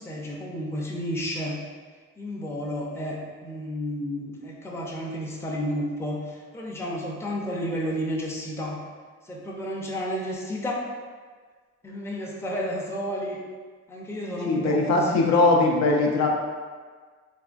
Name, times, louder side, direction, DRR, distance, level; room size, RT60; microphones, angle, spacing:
voice 1, 0.0-1.6 2.2-8.8 9.2-10.9 11.8-13.4 13.9-15.6, equal, 10° left, -3 dB, 0.5 m, -31 dB
voice 2, 14.4-16.3, left 2 dB, 65° left, 0 dB, 0.5 m, -20 dB
3.3 x 2.2 x 2.5 m, 1.5 s
cardioid pair, 90°, 30 cm